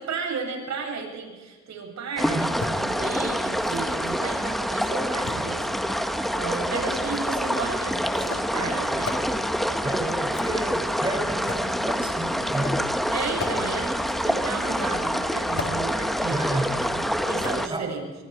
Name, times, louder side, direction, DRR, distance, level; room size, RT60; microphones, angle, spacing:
voice 1, 0.0-9.2 13.1-17.0 17.3-18.1, right 5 dB, 65° right, 1 dB, 7.9 m, -34 dB
sound 1, 2.2-17.7, equal, ahead, 1.7 m, -26 dB
voice 2, 2.2-2.6 9.8-12.9 16.3-16.8 17.7-17.9, right 1 dB, 15° right, 3 dB, 7.0 m, -31 dB
sound 2, 2.5-2.7 3.6-4.2 5.2-6.1 7.1-7.3 8.1-8.5 9.0-9.2 10.2-10.8 11.5-11.7 12.5-12.8 13.4-13.6 14.6-15.1 15.6-15.8 16.8-17.1 17.4-17.5, left 4 dB, 45° left, 4.5 m, -36 dB
26.5 x 23.0 x 4.8 m, 1.3 s
cardioid pair, 90°, 30 cm